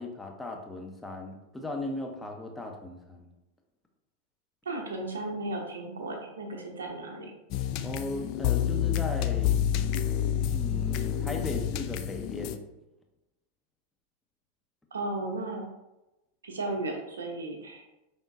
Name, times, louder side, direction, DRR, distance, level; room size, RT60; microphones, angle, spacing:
voice 1, 0.0-3.3 7.8-9.5 10.5-12.6, left 2 dB, 10° left, 2 dB, 0.7 m, -37 dB
voice 2, 4.6-7.3 14.9-15.7 16.4-17.9, right 2 dB, 70° right, 2 dB, 0.8 m, -35 dB
sound 1, 7.5-12.6, left 10 dB, 40° left, 0.3 m, -28 dB
5.2 x 3.6 x 2.6 m, 0.97 s
figure-of-eight pair, 90°, 0 cm